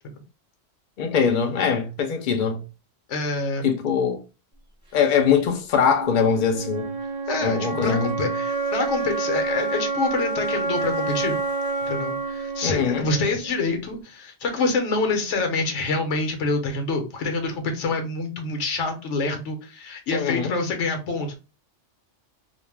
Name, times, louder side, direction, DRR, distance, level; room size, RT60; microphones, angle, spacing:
voice 1, 1.0-2.6 3.6-4.2 4.9-6.9 7.4-8.1 12.6-13.0 20.1-20.6, left 6 dB, 55° left, 0.6 m, -22 dB
voice 2, 3.1-3.7 7.3-11.3 11.9-21.4, left 3 dB, 75° left, 1.0 m, -26 dB
sound 1, 5.8-13.8, right 3 dB, 5° right, 0.6 m, -28 dB
2.4 x 2.1 x 3.2 m
omnidirectional pair, 1.3 m